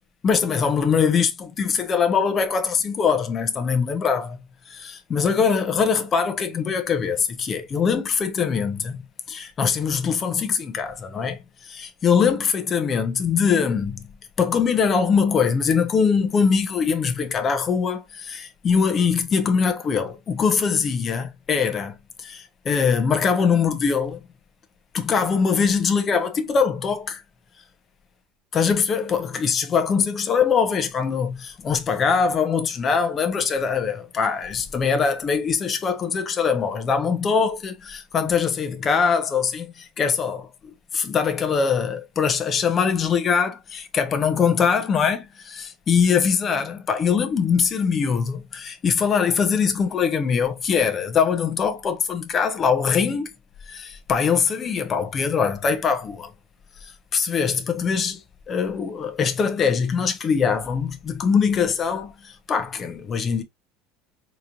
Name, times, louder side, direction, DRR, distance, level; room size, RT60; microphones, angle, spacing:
voice 1, 0.2-4.4 4.7-9.0 9.3-14.0 14.4-24.2 24.9-27.2 28.5-53.3 53.7-56.3 56.8-58.2 58.5-63.4, left 6 dB, 25° left, 0.8 m, -22 dB
4.1 x 3.0 x 2.4 m
cardioid pair, 160°, 0 cm